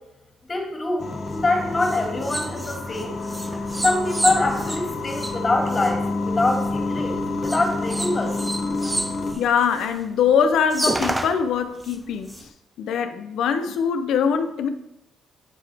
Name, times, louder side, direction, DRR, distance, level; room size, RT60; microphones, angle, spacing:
voice 1, 0.5-3.1 3.8-8.3, left 2 dB, 25° left, 1.6 m, -24 dB
sound 1, 1.0-9.3, left 3 dB, 45° left, 1.0 m, -28 dB
sound 2, 1.3-6.8 7.4-10.1 10.4-10.5 10.7-12.4, right 1 dB, 15° right, 0.4 m, -31 dB
voice 2, 9.4-12.5 12.8-14.7, left 7 dB, 75° left, 0.5 m, -22 dB
9.0 x 3.8 x 3.3 m
cardioid pair, 90°, 0 cm